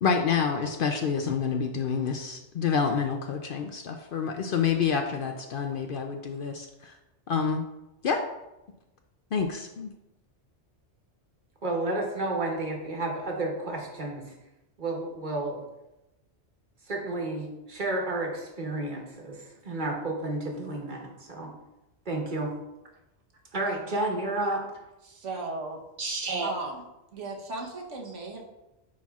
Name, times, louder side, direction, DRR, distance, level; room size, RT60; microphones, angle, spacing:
voice 1, 0.0-6.9 7.3-7.6 8.0-8.2 9.3-9.9, left 6 dB, 60° left, 4 dB, 0.6 m, -28 dB
voice 2, 11.6-14.2 14.8-15.6 16.9-21.5 22.0-22.5 23.5-24.6 26.0-26.5, right 2 dB, 45° right, -1 dB, 1.3 m, -31 dB
voice 3, 25.0-25.8 26.4-26.9 27.1-28.5, right 3 dB, 85° right, 0 dB, 1.4 m, -36 dB
9.5 x 4.3 x 2.4 m, 0.95 s
omnidirectional pair, 1.2 m